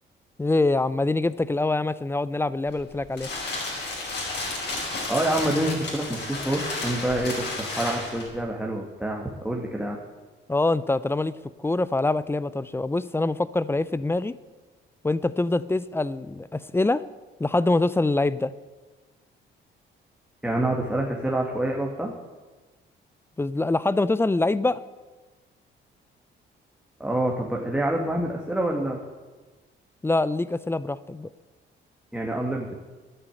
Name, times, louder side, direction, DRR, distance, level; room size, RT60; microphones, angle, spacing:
voice 1, 0.4-3.3 10.5-14.3 15.0-17.0 17.4-18.5 23.4-24.8 30.0-31.3, left 2 dB, 10° left, 17 dB, 0.5 m, -24 dB
sound 1, 2.7-8.4, left 2 dB, 55° left, 5.6 m, -32 dB
voice 2, 4.8-10.0 20.4-22.1 27.0-29.0 32.1-32.7, right 1 dB, 5° right, -1 dB, 1.9 m, -27 dB
11.0 x 9.1 x 9.1 m, 1.3 s
cardioid pair, 90°, 20 cm